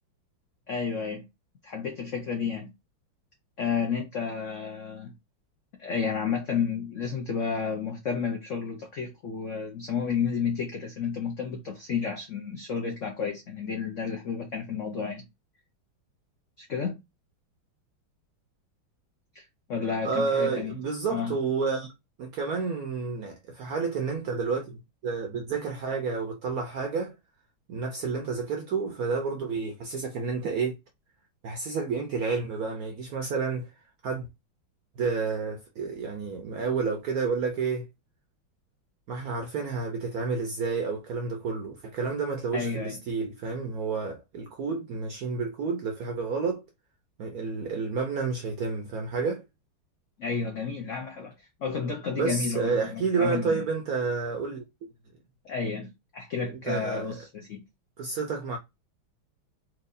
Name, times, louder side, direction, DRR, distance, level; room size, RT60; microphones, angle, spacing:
voice 1, 0.7-1.2 1.6-2.7 3.6-5.1 5.8-15.2 16.6-17.0 19.3-20.7 21.1-21.3 42.5-43.0 50.2-53.6 55.4-57.6, left 6 dB, 75° left, 0.7 m, -31 dB
voice 2, 20.0-21.9 22.2-24.8 25.0-27.1 27.7-30.8 31.4-33.7 34.0-34.3 35.0-37.9 39.1-46.6 47.2-49.4 52.1-54.6 56.5-57.1 58.0-58.6, right 4 dB, 70° right, 0.9 m, -30 dB
4.5 x 2.4 x 2.5 m
omnidirectional pair, 2.2 m